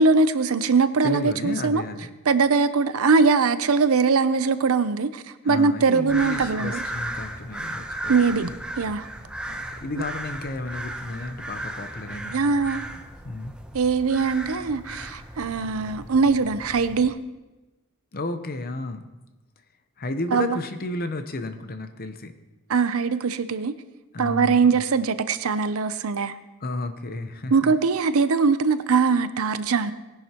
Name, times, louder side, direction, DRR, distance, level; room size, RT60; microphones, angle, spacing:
voice 1, 0.0-1.8 2.3-6.8 8.1-8.5 8.8-9.1 12.3-12.8 13.7-17.1 20.3-20.6 22.7-23.7 24.2-26.3 27.5-29.9, right 4 dB, 65° right, 12 dB, 0.6 m, -21 dB
voice 2, 1.0-2.1 5.4-8.4 9.5-12.3 13.2-13.5 18.1-19.0 20.0-22.3 24.1-24.8 26.6-27.7, left 2 dB, 40° left, 8 dB, 0.8 m, -32 dB
sound 1, 6.1-17.1, right 1 dB, 5° right, 0.7 m, -36 dB
19.0 x 10.5 x 2.9 m, 1.1 s
head